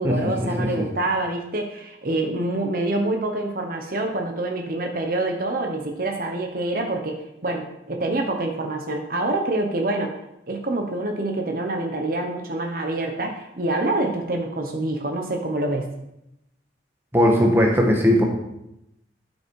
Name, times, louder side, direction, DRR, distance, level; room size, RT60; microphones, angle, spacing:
voice 1, 0.0-10.1 10.5-15.9, right 2 dB, 50° right, 3 dB, 1.0 m, -26 dB
voice 2, 17.1-18.2, equal, 10° right, 0 dB, 1.4 m, -18 dB
12.0 x 5.4 x 4.7 m, 0.84 s
head